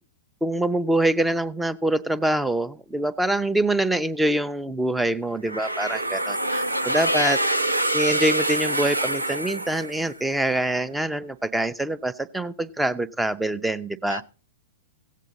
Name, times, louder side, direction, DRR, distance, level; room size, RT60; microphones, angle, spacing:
voice 1, 0.4-7.4 7.9-14.2, right 1 dB, 5° right, 0.5 m, -25 dB
sound 1, 5.5-10.4, right 1 dB, 85° right, 0.7 m, -26 dB
voice 2, 6.2-7.8 14.1-14.2, left 1 dB, 85° left, 0.5 m, -29 dB
16.0 x 8.3 x 4.0 m
figure-of-eight pair, 105°, 0 cm